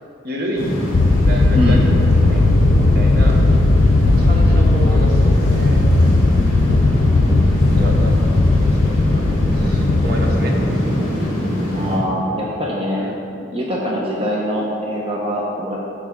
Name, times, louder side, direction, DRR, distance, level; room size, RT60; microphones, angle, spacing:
voice 1, 0.2-0.7 1.2-1.9 2.2-3.4 4.1-5.9 7.7-8.1 8.6-10.6 13.0-13.3, equal, 50° right, 0 dB, 1.1 m, -29 dB
sound 1, 0.6-12.0, equal, 30° left, 2.2 m, -23 dB
sound 2, 0.9-11.0, left 2 dB, 65° left, 0.5 m, -16 dB
voice 2, 11.6-13.1 13.4-15.8, equal, 25° right, -4 dB, 0.9 m, -23 dB
14.5 x 5.3 x 3.7 m, 2.7 s
head